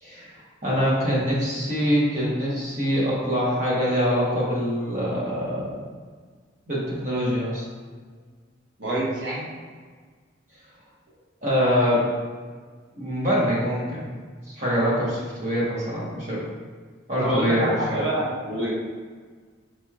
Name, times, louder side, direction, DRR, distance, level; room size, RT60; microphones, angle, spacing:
voice 1, 0.0-5.8 6.7-7.6 11.4-12.0 12.9-14.1 14.5-16.4 17.1-18.0, equal, 35° right, -7 dB, 1.1 m, -24 dB
voice 2, 8.8-9.5 17.2-18.7, right 1 dB, 60° right, -6 dB, 1.0 m, -26 dB
4.3 x 3.0 x 2.3 m, 1.5 s
head